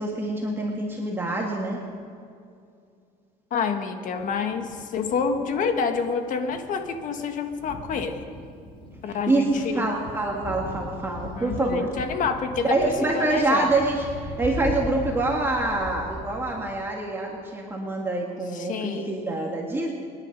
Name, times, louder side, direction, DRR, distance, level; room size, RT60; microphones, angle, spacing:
voice 1, 0.0-1.8 9.1-9.5 9.7-11.9 12.7-19.9, right 2 dB, 15° right, -1 dB, 1.8 m, -26 dB
voice 2, 3.5-8.3 9.0-9.9 11.2-13.7 18.5-19.1, left 5 dB, 50° left, 6 dB, 1.6 m, -28 dB
Thunder, 4.2-16.8, left 2 dB, 30° left, 2.2 m, -39 dB
25.0 x 10.5 x 5.3 m, 2.4 s
cardioid pair, 125°, 17 cm